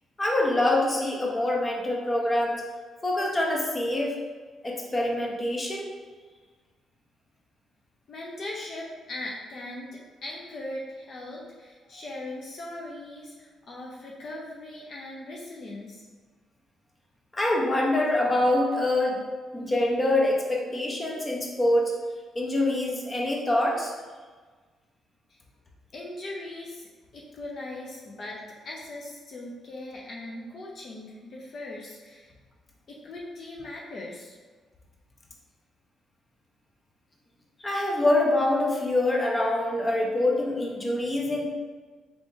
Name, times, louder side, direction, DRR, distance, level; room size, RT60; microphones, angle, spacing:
voice 1, 0.2-2.6 3.0-4.2 4.6-5.9 17.3-19.2 19.5-21.9 22.3-23.9 37.6-41.5, left 1 dB, 25° left, -1 dB, 0.8 m, -25 dB
voice 2, 8.1-16.0 25.9-26.9 27.1-28.4 28.6-32.3 32.9-34.3, left 1 dB, 55° left, -3 dB, 0.6 m, -39 dB
4.2 x 3.4 x 2.7 m, 1.4 s
cardioid pair, 90°, 0 cm